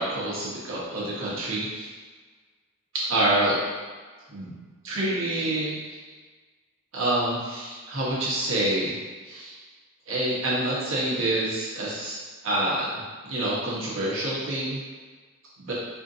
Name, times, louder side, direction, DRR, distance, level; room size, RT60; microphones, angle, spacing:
voice 1, 0.0-1.9 2.9-3.6 4.3-4.5 4.8-5.7 6.9-8.9 9.2-9.6 10.1-12.2 12.4-12.9 13.2-14.8 15.6-15.7, right 1 dB, 65° right, -7 dB, 1.1 m, -27 dB
4.3 x 2.7 x 2.7 m, 1.4 s
head